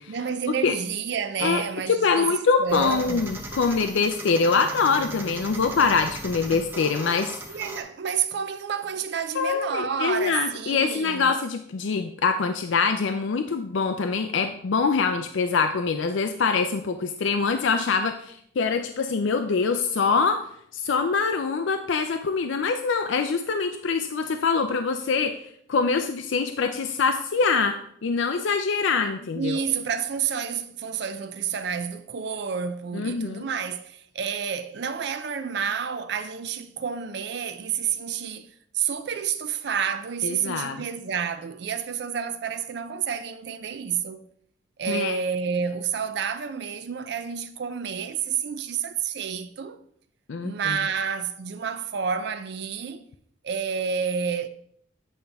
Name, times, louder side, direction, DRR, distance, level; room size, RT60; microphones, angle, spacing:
voice 1, 0.1-3.3 7.5-11.3 29.3-44.2 44.8-49.8 50.4-53.0 53.4-54.5, right 7 dB, 60° right, 0.4 m, -29 dB
voice 2, 1.4-7.4 9.3-20.4 20.7-29.6 32.9-33.5 40.2-40.8 44.9-45.2 50.3-50.8, left 5 dB, 75° left, 0.4 m, -24 dB
sound 1, 2.7-7.8, right 1 dB, 10° right, 0.7 m, -37 dB
8.6 x 5.4 x 3.4 m
head